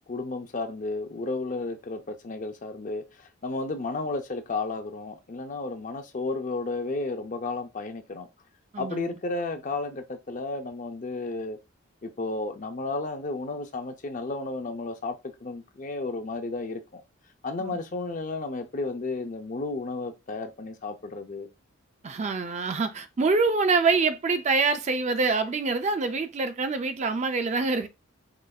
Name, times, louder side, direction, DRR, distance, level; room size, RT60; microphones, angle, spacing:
voice 1, 0.1-8.3 8.8-11.6 12.0-17.0 17.4-21.5, left 3 dB, 35° left, 0.5 m, -33 dB
voice 2, 22.0-27.9, right 4 dB, 30° right, 0.3 m, -25 dB
4.9 x 3.2 x 2.3 m
head